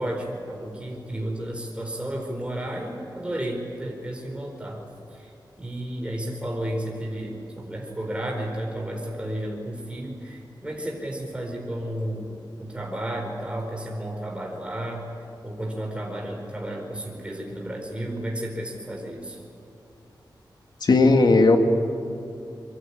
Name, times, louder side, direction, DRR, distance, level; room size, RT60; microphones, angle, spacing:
voice 1, 0.0-4.8 5.1-5.3 5.6-15.1 15.4-19.4, right 1 dB, 15° right, 0 dB, 4.6 m, -32 dB
voice 2, 20.8-21.6, left 3 dB, 65° left, 4 dB, 2.7 m, -16 dB
26.5 x 24.5 x 8.8 m, 2.7 s
wide cardioid pair, 115°, 8 cm